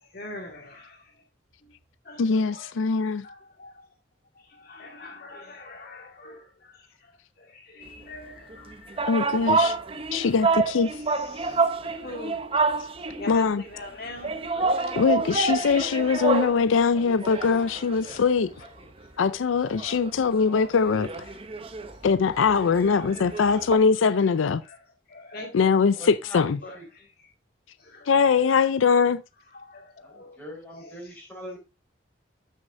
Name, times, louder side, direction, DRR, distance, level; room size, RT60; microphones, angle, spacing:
voice 1, 0.1-1.0 2.1-2.7 3.2-3.8 4.5-6.8 7.4-9.0 11.1-12.5 13.2-15.0 15.7-16.4 17.3-17.6 19.7-19.8 20.3-20.5 22.3-23.7 24.7-24.8 25.1-26.1 26.6-27.0 27.8-28.6 29.6-30.4 30.7-31.2, left 2 dB, 50° left, 2.1 m, -43 dB
voice 2, 2.2-3.2 9.0-9.8 10.1-10.9 13.3-13.6 15.0-18.5 19.2-21.2 22.0-24.6 25.5-26.6 28.1-29.2, left 5 dB, 85° left, 0.4 m, -22 dB
sound 1, 8.5-13.4 14.2-16.6 17.0-18.9 19.2-19.3 19.6-23.8, right 4 dB, 30° right, 0.7 m, -28 dB
voice 3, 26.0-26.4 26.7-26.8 30.0-31.6, equal, 10° left, 4.4 m, -41 dB
13.0 x 6.5 x 2.6 m
head